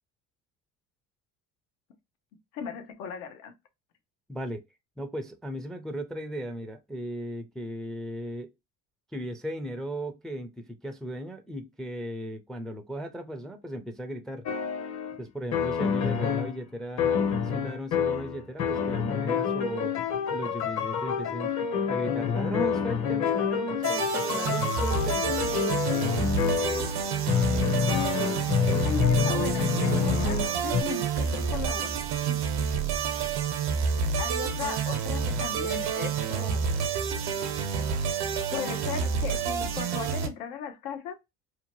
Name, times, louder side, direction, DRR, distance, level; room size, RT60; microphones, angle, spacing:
voice 1, 2.5-3.5 28.7-31.9 32.3-32.4 33.8-36.8 38.5-41.2, left 7 dB, 90° left, 0.8 m, -37 dB
voice 2, 4.3-4.6 5.0-8.5 9.1-14.5 15.2-19.9 20.3-21.5 21.9-25.4, equal, ahead, 0.3 m, -36 dB
sound 1, 14.5-15.2 15.5-16.6 17.0-30.8, left 7 dB, 45° left, 0.7 m, -27 dB
sound 2, 23.8-40.3, right 6 dB, 85° right, 0.8 m, -29 dB
2.8 x 2.2 x 2.9 m
supercardioid pair, 100°, 38 cm